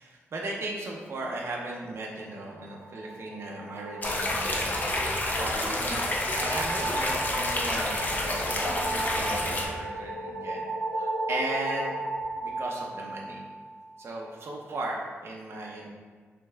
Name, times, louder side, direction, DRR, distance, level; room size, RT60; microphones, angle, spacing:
voice 1, 0.0-10.7 10.9-11.9 12.4-13.4 14.0-15.9, right 2 dB, 60° right, -2 dB, 0.6 m, -37 dB
sound 1, 2.5-13.9, right 1 dB, 75° left, 1.3 m, -35 dB
sound 2, 4.0-9.7, left 1 dB, 35° left, 0.6 m, -29 dB
5.2 x 3.3 x 2.3 m, 1.5 s
wide cardioid pair, 105°, 5 cm